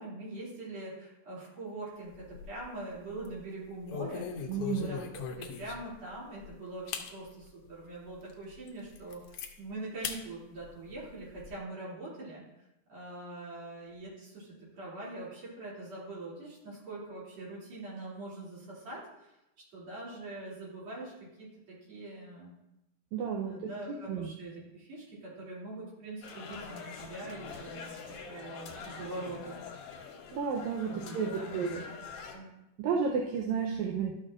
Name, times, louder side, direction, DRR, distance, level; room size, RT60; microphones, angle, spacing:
voice 1, 0.0-12.4 12.9-19.3 19.7-22.5 23.4-28.0 28.3-29.6 30.8-31.8 32.3-32.5, right 2 dB, 55° right, -7 dB, 3.8 m, -43 dB
sound 1, 2.0-2.8 3.1-3.3 3.9-6.0 6.4-6.5 6.9-7.1 7.6-7.7 8.3-8.4 8.7-9.5 10.0-10.2 10.6-11.5, left 7 dB, 90° left, 1.3 m, -39 dB
voice 2, 4.5-4.9 23.1-24.3 30.3-31.8 32.8-34.1, right 6 dB, 75° right, -1 dB, 2.0 m, -32 dB
sound 2, 26.2-32.4, left 5 dB, 70° left, 2.1 m, -45 dB
12.0 x 6.5 x 2.5 m, 0.90 s
omnidirectional pair, 3.5 m